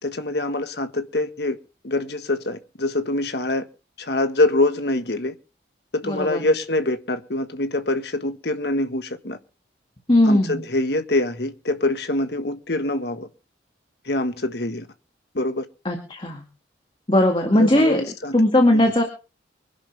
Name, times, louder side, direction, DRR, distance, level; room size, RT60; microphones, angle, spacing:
voice 1, 0.0-1.6 1.8-3.7 4.0-5.3 5.9-9.4 10.2-13.3 14.0-14.9 15.3-15.7 17.5-18.4 18.7-18.8, left 2 dB, 65° left, 1.5 m, -24 dB
voice 2, 6.0-6.4 10.1-10.6 15.9-16.4 17.1-18.0 18.3-19.0, left 1 dB, 30° left, 2.0 m, -18 dB
24.5 x 11.0 x 3.4 m
head